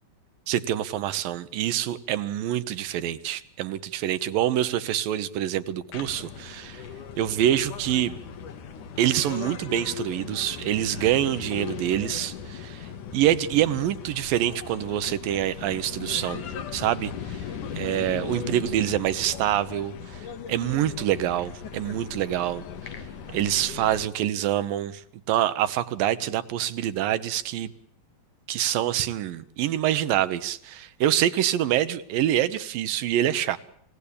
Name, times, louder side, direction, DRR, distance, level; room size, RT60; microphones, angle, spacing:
voice 1, 0.5-6.8 7.2-8.1 9.0-16.5 16.7-17.4 17.7-22.7 23.3-25.0 25.3-27.7 28.5-33.6, right 12 dB, 90° right, 13 dB, 2.9 m, -26 dB
sound 1, 5.9-24.1, left 7 dB, 70° left, 3.3 m, -38 dB
28.5 x 17.5 x 8.6 m, 0.70 s
omnidirectional pair, 3.9 m